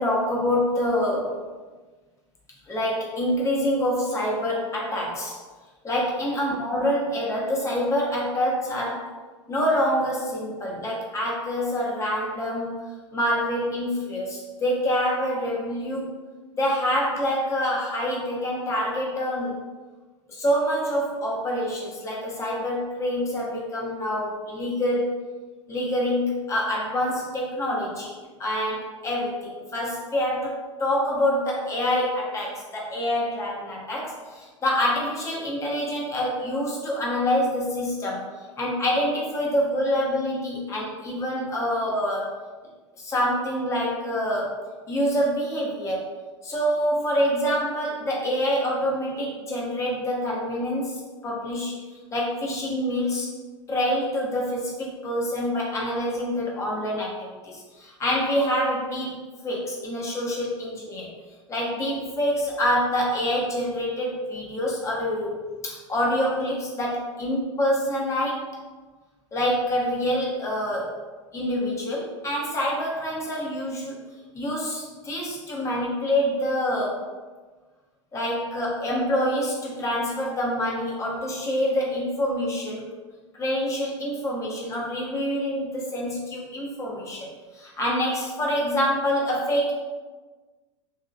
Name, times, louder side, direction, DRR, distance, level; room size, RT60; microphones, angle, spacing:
voice 1, 0.0-1.4 2.7-5.4 5.8-9.1 9.5-16.1 16.6-19.6 20.3-25.2 25.7-28.1 28.4-38.3 38.6-42.3 43.0-46.1 46.4-51.7 52.1-53.3 53.7-61.1 61.5-68.5 69.3-70.9 71.3-74.0 74.3-77.0 78.1-82.8 83.4-89.7, equal, 20° left, -3 dB, 0.7 m, -26 dB
2.8 x 2.7 x 2.4 m, 1.3 s
figure-of-eight pair, 85°, 16 cm